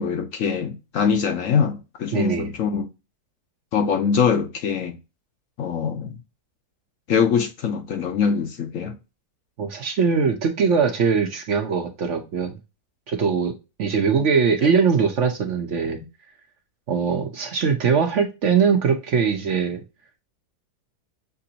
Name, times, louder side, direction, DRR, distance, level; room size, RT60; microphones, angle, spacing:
voice 1, 0.0-2.9 3.7-5.0 5.6-6.2 7.1-9.0 14.6-14.7, left 6 dB, 65° left, 1.0 m, -23 dB
voice 2, 2.1-2.5 9.6-12.5 13.1-13.5 13.8-16.0 16.9-19.8, right 6 dB, 60° right, 0.9 m, -21 dB
6.8 x 2.6 x 2.7 m
omnidirectional pair, 1.6 m